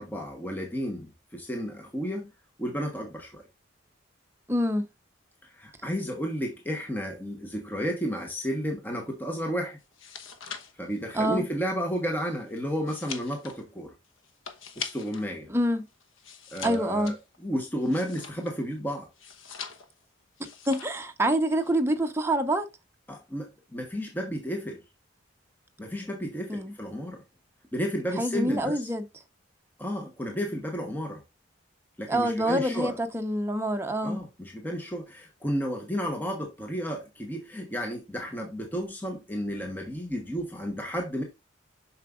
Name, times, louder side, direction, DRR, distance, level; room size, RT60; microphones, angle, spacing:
voice 1, 0.0-2.3 2.6-3.5 5.4-9.8 10.8-13.9 14.8-15.5 16.5-17.2 17.4-19.1 23.1-24.8 25.8-27.2 27.7-28.9 29.8-31.2 32.0-33.0 34.0-41.2, equal, 10° left, 1.1 m, -32 dB
voice 2, 4.5-4.9 11.1-11.4 15.5-15.8 16.6-17.1 20.7-22.7 26.5-26.7 28.2-29.1 32.1-34.2, right 1 dB, 10° right, 0.8 m, -26 dB
sound 1, 9.8-15.3 15.6-18.7 19.1-20.0 20.4-21.1 21.3-21.7, left 6 dB, 85° left, 1.1 m, -42 dB
7.4 x 5.9 x 2.4 m
head